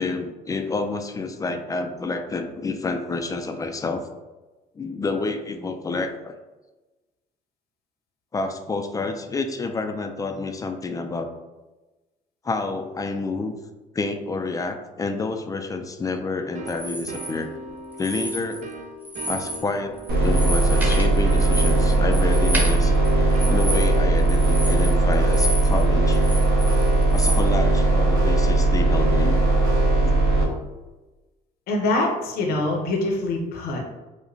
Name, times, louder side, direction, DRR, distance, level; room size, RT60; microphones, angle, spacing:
voice 1, 0.0-4.1 4.8-6.4 8.3-11.3 12.4-13.5 13.9-17.5 18.0-18.6 19.2-19.9 20.2-22.9 23.5-26.2 27.1-29.4 30.0-30.2, left 3 dB, 20° left, 6 dB, 0.3 m, -29 dB
sound 1, 16.5-27.0, right 2 dB, 45° right, 0.4 m, -40 dB
sound 2, 16.7-17.3 17.9-18.7 19.0-19.7 20.0-25.8 26.1-27.4, equal, 10° right, 0.9 m, -31 dB
sound 3, 20.1-30.4, right 2 dB, 65° right, 1.2 m, -19 dB
voice 2, 31.7-33.8, left 2 dB, 65° left, 0 dB, 0.7 m, -24 dB
4.9 x 2.1 x 2.6 m, 1.1 s
cardioid pair, 110°, 17 cm